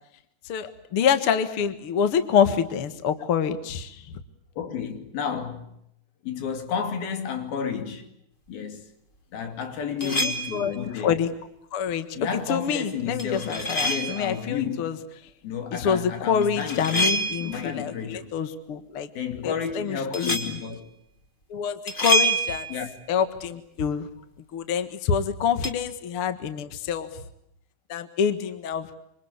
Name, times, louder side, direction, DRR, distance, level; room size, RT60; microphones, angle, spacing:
voice 1, 0.4-4.2 10.0-11.3 11.7-12.1 12.5-15.0 15.7-19.1 19.4-20.6 21.5-22.7 23.1-24.1 24.5-27.1 27.9-28.9, left 7 dB, 45° left, 2.0 m, -26 dB
voice 2, 4.6-5.7 6.2-8.1 8.5-8.9 9.3-11.2 12.2-14.9 15.4-18.3 19.2-20.9 22.7-22.9, left 7 dB, 75° left, 4.6 m, -32 dB
sound 1, 10.0-10.7 13.2-14.3 16.4-17.7 20.1-20.6 21.9-22.9 25.6-25.7, right 1 dB, 15° left, 2.7 m, -26 dB
26.5 x 26.0 x 8.3 m
omnidirectional pair, 4.3 m